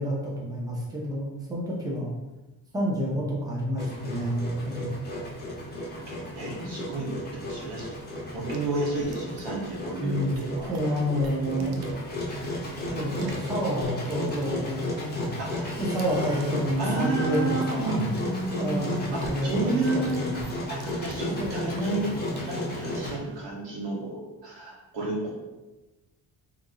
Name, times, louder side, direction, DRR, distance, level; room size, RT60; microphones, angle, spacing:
voice 1, 0.0-2.1 2.7-4.9 10.0-10.3 10.7-11.7 12.9-15.4 15.8-18.3 18.6-20.5 21.4-21.5, equal, 10° right, -4 dB, 0.6 m, -29 dB
Engine, 3.8-23.1, left 1 dB, 20° left, 0.9 m, -34 dB
voice 2, 5.6-7.9 8.3-10.7 11.4-12.0 15.4-15.8 16.8-20.4 20.7-25.3, right 2 dB, 80° right, -3 dB, 1.2 m, -31 dB
sound 1, 6.5-23.5, right 3 dB, 60° right, 0.6 m, -47 dB
2.9 x 2.6 x 3.8 m, 1.1 s
cardioid pair, 125°, 42 cm